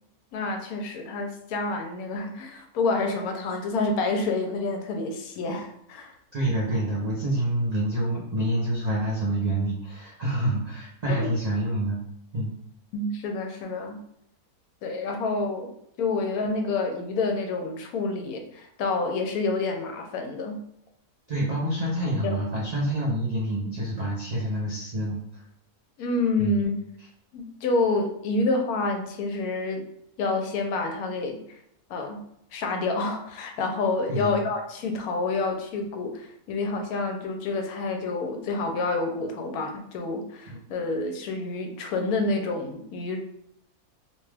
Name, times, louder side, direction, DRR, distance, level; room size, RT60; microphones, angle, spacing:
voice 1, 0.3-6.1 11.1-11.3 12.9-14.0 14.8-15.7 16.0-20.6 22.2-22.4 26.0-26.7 27.3-29.9 30.2-31.4 31.9-32.2 32.5-43.2, left 3 dB, 75° left, 4 dB, 1.0 m, -28 dB
voice 2, 6.3-12.0 12.3-12.5 21.3-25.4 26.4-26.6 34.1-34.4, right 1 dB, 85° right, -5 dB, 0.3 m, -27 dB
2.8 x 2.2 x 3.2 m, 0.74 s
omnidirectional pair, 1.6 m